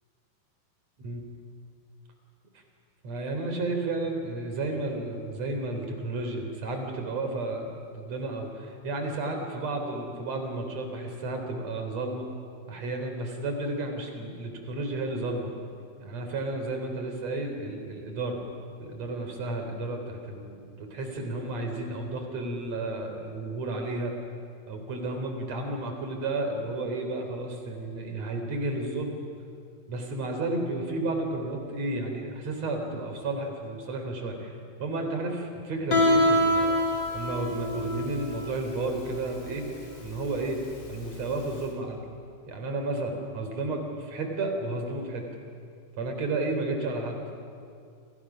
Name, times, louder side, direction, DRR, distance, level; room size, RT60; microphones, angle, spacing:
voice 1, 3.0-7.7 7.9-12.3 12.7-15.5 16.0-18.4 18.8-24.1 24.7-29.2 29.9-34.5 34.8-36.8 37.1-39.6 40.0-42.0 42.5-45.2 46.0-47.2, right 2 dB, 35° right, 4 dB, 4.1 m, -32 dB
Guitar, 35.9-41.6, left 1 dB, 25° left, 3.1 m, -26 dB
29.5 x 28.0 x 6.2 m, 2.4 s
omnidirectional pair, 5.6 m